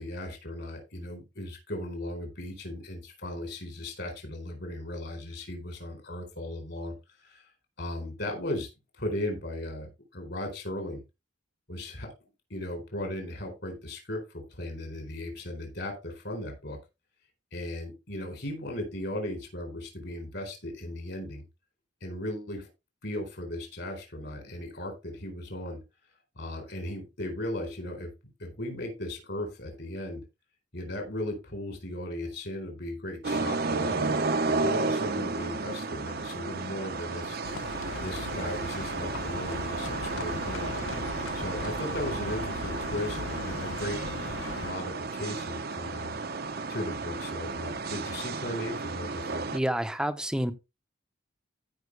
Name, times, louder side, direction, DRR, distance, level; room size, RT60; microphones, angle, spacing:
voice 1, 0.0-6.9 7.2-7.4 7.8-8.7 9.0-11.0 11.7-12.1 12.5-16.8 17.5-21.4 22.0-22.7 23.0-25.8 26.4-28.1 28.4-30.2 30.7-34.2 34.5-37.4 38.0-40.8 41.3-44.0 44.6-46.2 46.7-49.4, left 1 dB, 60° left, 4.2 m, -37 dB
sound 1, 33.2-49.6, right 3 dB, 50° right, 0.9 m, -33 dB
Livestock farm animals working animals, 37.4-44.7, left 3 dB, 80° left, 0.8 m, -38 dB
voice 2, 49.5-50.5, right 1 dB, 5° right, 0.8 m, -28 dB
14.5 x 5.8 x 3.4 m
head